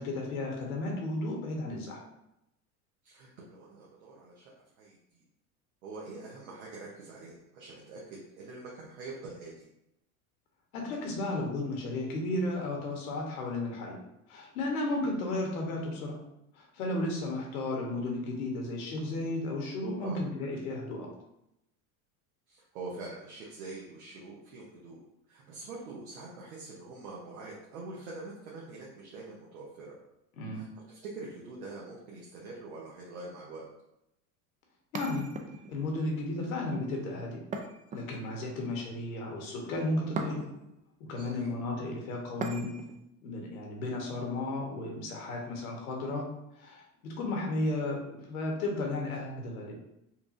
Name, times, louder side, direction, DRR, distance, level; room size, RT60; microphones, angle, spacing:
voice 1, 0.0-2.0 10.7-14.0 14.3-16.2 16.5-21.1 30.4-30.7 34.9-35.3 35.7-37.4 37.9-40.5 41.0-42.8 43.2-46.3 46.6-49.7, left 2 dB, 85° left, 0 dB, 1.2 m, -34 dB
voice 2, 3.0-5.2 5.8-9.7 20.0-20.2 22.5-25.0 25.3-30.0 30.5-33.7 41.2-41.5, right 3 dB, 85° right, -5 dB, 1.0 m, -45 dB
sound 1, 34.9-35.9 37.5-38.5 40.2-40.8 42.4-43.0, right 3 dB, 20° right, 0.3 m, -39 dB
4.4 x 2.6 x 2.6 m, 0.83 s
hypercardioid pair, 90°, 42 cm